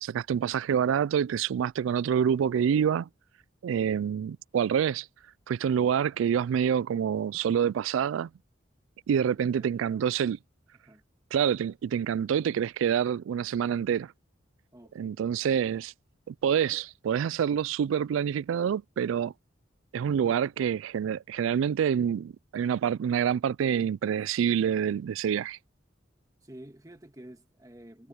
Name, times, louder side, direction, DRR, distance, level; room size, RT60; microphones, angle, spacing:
voice 1, 0.0-3.1 3.6-5.1 5.5-8.3 9.1-10.4 11.3-14.1 15.0-15.9 16.3-19.3 19.9-25.6, right 8 dB, 85° right, 0.3 m, -27 dB
voice 2, 9.2-10.0 10.8-11.0 14.7-15.2 20.2-20.4 26.4-28.1, right 1 dB, 20° right, 1.6 m, -50 dB
head